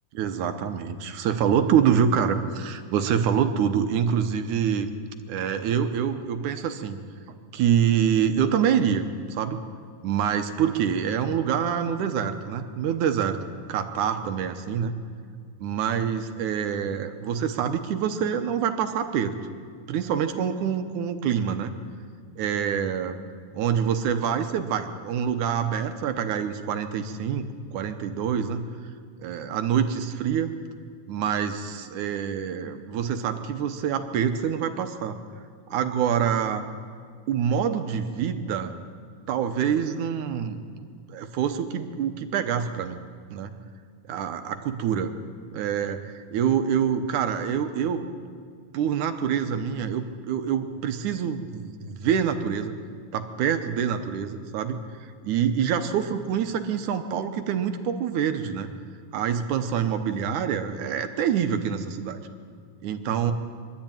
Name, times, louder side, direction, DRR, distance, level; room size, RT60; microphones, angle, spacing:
voice 1, 0.1-4.9 5.3-7.0 7.3-9.1 9.3-9.6 10.0-13.4 13.7-15.0 15.6-19.4 19.9-21.7 22.4-23.2 23.5-28.7 29.2-30.5 31.1-35.2 35.7-36.6 37.3-38.7 39.3-40.8 41.1-43.0 43.3-43.6 44.1-45.1 45.5-48.0 48.7-52.7 53.1-58.7 59.1-62.2 62.8-63.3, right 8 dB, 75° right, 8 dB, 2.4 m, -26 dB
23.0 x 13.0 x 8.9 m, 2.2 s
omnidirectional pair, 3.6 m